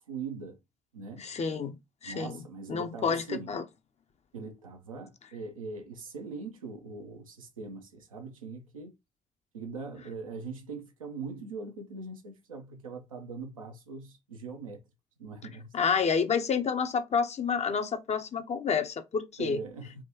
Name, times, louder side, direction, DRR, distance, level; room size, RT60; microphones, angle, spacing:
voice 1, 0.1-0.6 0.9-1.2 2.0-3.5 4.3-8.9 9.5-14.8 15.2-15.7 19.4-20.0, right 4 dB, 85° right, 0.6 m, -41 dB
voice 2, 1.2-1.8 2.0-2.4 2.7-3.6 15.7-19.6, left 6 dB, 40° left, 0.7 m, -29 dB
3.5 x 2.9 x 2.8 m
figure-of-eight pair, 40°, 17 cm